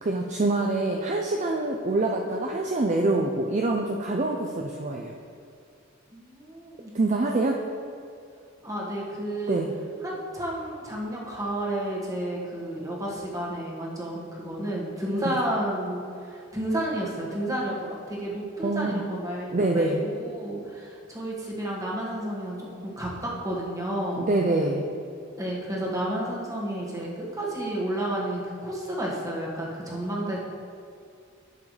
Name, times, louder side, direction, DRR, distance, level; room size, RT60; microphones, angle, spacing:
voice 1, 0.0-5.2 6.9-7.6 9.5-9.7 15.2-15.3 18.6-19.0 19.5-20.0 24.2-24.8, right 2 dB, 35° right, 1 dB, 0.5 m, -25 dB
voice 2, 6.1-7.2 8.6-9.6 10.0-24.2 25.4-30.4, right 1 dB, 15° right, -4 dB, 1.7 m, -31 dB
11.0 x 7.3 x 3.3 m, 2.4 s
head